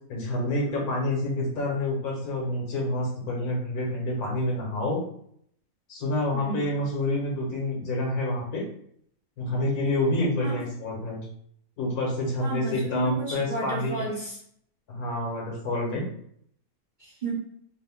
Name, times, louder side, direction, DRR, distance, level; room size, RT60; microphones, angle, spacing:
voice 1, 0.1-5.0 5.9-8.6 9.4-11.2 11.8-14.0 14.9-16.0, left 1 dB, 85° left, -2 dB, 1.6 m, -28 dB
voice 2, 6.3-6.8 10.4-10.6 12.4-14.4 17.0-17.3, right 3 dB, 50° right, -4 dB, 0.6 m, -33 dB
3.2 x 2.5 x 3.5 m, 0.66 s
omnidirectional pair, 1.6 m